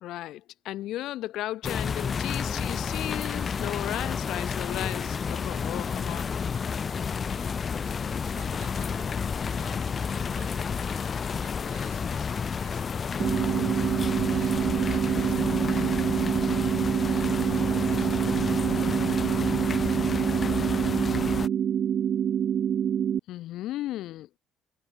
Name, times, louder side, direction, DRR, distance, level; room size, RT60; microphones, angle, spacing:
voice 1, 0.0-6.3 23.3-24.4, left 14 dB, 65° left, 0.9 m, -35 dB
sound 1, 1.6-21.5, left 6 dB, 25° left, 0.6 m, -30 dB
sound 2, 3.8-20.9, left 18 dB, 85° left, 5.4 m, -54 dB
voice 2, 7.3-7.7 8.0-10.7 11.1-12.2 12.6-13.1 14.3-16.3 17.0-18.3, right 16 dB, 75° right, 3.7 m, -54 dB
sound 3, 13.2-23.2, right 9 dB, 40° right, 0.4 m, -26 dB
cardioid pair, 170°, 0 cm